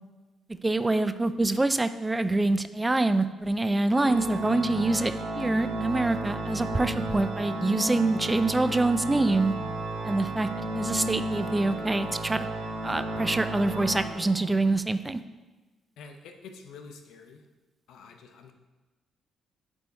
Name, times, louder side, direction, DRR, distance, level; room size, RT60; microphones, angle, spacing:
voice 1, 0.6-9.5 10.0-10.5 10.7-12.5 12.8-15.2, right 2 dB, 15° right, 11 dB, 0.3 m, -25 dB
Organ, 3.9-14.7, right 1 dB, 60° right, 1.7 m, -33 dB
voice 2, 16.0-17.4 17.9-18.5, left 4 dB, 80° left, 5 dB, 0.7 m, -47 dB
8.7 x 3.5 x 4.0 m, 1.2 s
cardioid pair, 90°, 0 cm